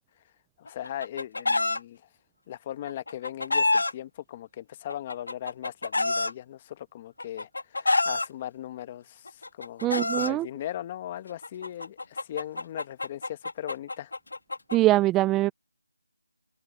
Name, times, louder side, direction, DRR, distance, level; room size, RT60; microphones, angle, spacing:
voice 1, 0.6-2.1 2.5-14.1, left 12 dB, 15° left, 1.1 m, -38 dB
Chicken rooster, 0.7-1.8 2.9-3.9 4.9-6.3 7.2-8.3 9.3-10.3 11.4-14.8, left 3 dB, 70° left, 2.2 m, -27 dB
voice 2, 9.8-10.5 14.7-15.5, right 16 dB, 5° right, 0.3 m, -22 dB
figure-of-eight pair, 175°, 0 cm